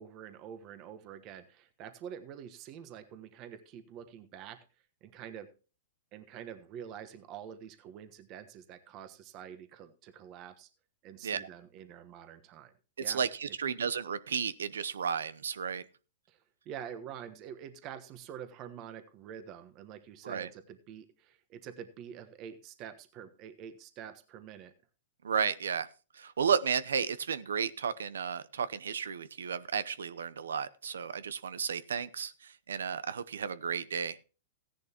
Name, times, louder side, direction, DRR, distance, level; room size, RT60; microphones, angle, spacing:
voice 1, 0.0-4.6 5.0-5.5 6.1-10.7 11.0-12.7 13.0-13.7 16.3-16.4 16.6-24.7, right 9 dB, 35° right, 10 dB, 1.2 m, -46 dB
voice 2, 13.1-15.8 20.2-20.5 25.2-25.9 26.1-34.2, right 7 dB, 90° right, 17 dB, 0.7 m, -33 dB
15.0 x 10.5 x 2.9 m, 0.34 s
hypercardioid pair, 135°, 0 cm